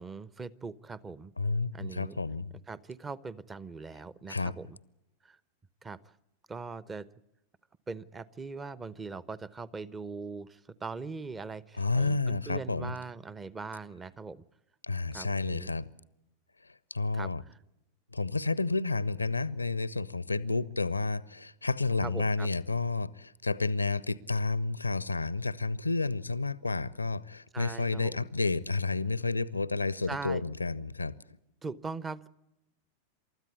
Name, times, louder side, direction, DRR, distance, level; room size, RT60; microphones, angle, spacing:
voice 1, 0.0-1.3 1.7-2.2 2.7-4.8 5.2-5.4 5.8-6.0 6.5-7.1 7.9-14.4 15.1-15.7 17.1-17.6 22.0-22.5 27.5-28.3 30.1-30.4 31.6-32.3, right 4 dB, 15° right, 0.8 m, -41 dB
voice 2, 1.4-2.5 4.3-4.6 11.8-12.9 14.8-15.9 16.6-17.4 18.1-31.2, left 3 dB, 80° left, 0.7 m, -30 dB
28.5 x 13.5 x 8.3 m
figure-of-eight pair, 90°, 0 cm